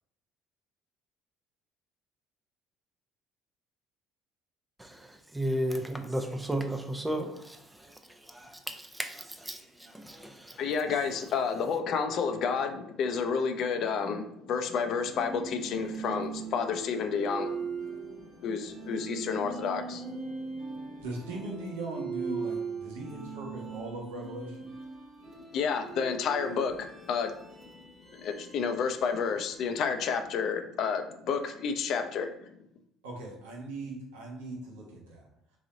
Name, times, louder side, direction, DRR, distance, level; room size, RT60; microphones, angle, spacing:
voice 1, 4.8-10.8 11.0-11.2, right 1 dB, 10° right, 0.7 m, -35 dB
voice 2, 10.6-20.6 25.5-27.7 28.1-32.5, left 6 dB, 60° left, 0.6 m, -31 dB
sound 1, 15.0-30.1, right 5 dB, 40° right, 1.1 m, -41 dB
voice 3, 21.0-24.7 33.0-35.2, right 2 dB, 90° right, 1.1 m, -39 dB
3.9 x 3.1 x 3.7 m
hypercardioid pair, 70°, 0 cm